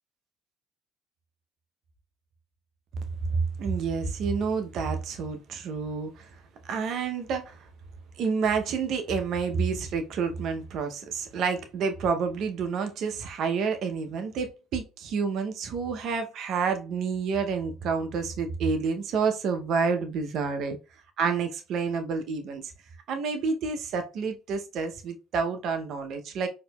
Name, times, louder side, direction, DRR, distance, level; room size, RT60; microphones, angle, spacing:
voice 1, 3.3-6.3 6.7-7.7 8.2-20.8 21.2-22.7 23.1-26.5, right 5 dB, 60° right, 0.7 m, -29 dB
4.2 x 2.8 x 2.3 m
hypercardioid pair, 70°, 0 cm